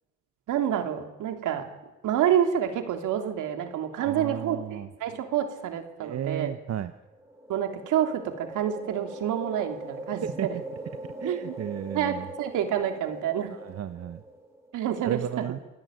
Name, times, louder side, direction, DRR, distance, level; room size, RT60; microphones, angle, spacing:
voice 1, 0.5-1.6 2.0-6.5 7.5-10.5 11.2-11.6 11.9-13.5 14.7-15.4, right 9 dB, 85° right, 5 dB, 3.5 m, -28 dB
voice 2, 3.9-4.9 6.0-6.9 10.2-10.5 11.2-12.3 13.5-14.2 15.0-15.6, right 10 dB, 55° right, 10 dB, 1.0 m, -34 dB
sound 1, 7.0-14.7, right 1 dB, 10° right, 6.4 m, -41 dB
28.5 x 17.0 x 9.2 m, 1.1 s
cardioid pair, 90°, 30 cm